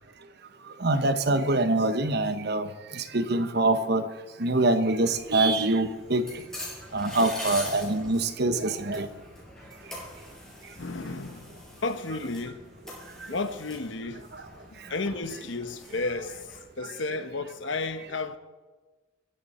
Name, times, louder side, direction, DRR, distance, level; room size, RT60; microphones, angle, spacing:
voice 1, 0.8-2.7 2.9-4.1 4.4-6.2 6.9-9.1, right 2 dB, 55° right, 1.1 m, -24 dB
sound 1, 5.0-16.6, left 1 dB, 5° left, 6.1 m, -44 dB
voice 2, 10.8-12.6 13.3-14.2 14.7-16.4 16.8-18.4, left 3 dB, 65° left, 1.1 m, -33 dB
22.0 x 15.5 x 4.3 m
head